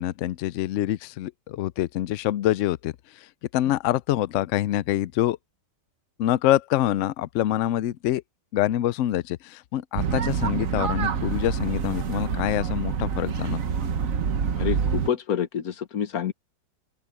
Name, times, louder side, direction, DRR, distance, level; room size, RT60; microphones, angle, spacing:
voice 1, 0.0-2.9 3.5-5.4 6.2-8.2 8.5-13.6, left 13 dB, 85° left, 0.6 m, -25 dB
sound 1, 10.0-15.1, right 6 dB, 55° right, 1.4 m, -26 dB
voice 2, 14.5-16.3, left 8 dB, 60° left, 1.6 m, -27 dB
open air
omnidirectional pair, 1.8 m